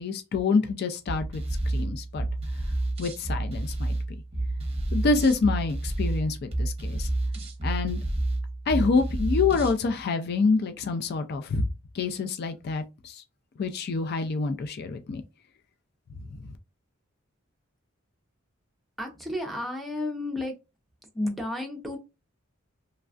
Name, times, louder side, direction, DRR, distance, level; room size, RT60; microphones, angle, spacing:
voice 1, 0.0-2.3 3.0-4.0 4.9-7.1 7.6-8.0 8.7-11.6 11.9-13.2 13.6-15.2 16.4-16.5, left 4 dB, 50° left, 0.4 m, -27 dB
sound 1, 1.1-9.8, right 2 dB, 30° right, 0.8 m, -29 dB
voice 2, 19.0-20.5 21.1-22.0, left 1 dB, ahead, 0.7 m, -32 dB
3.2 x 2.3 x 2.4 m
head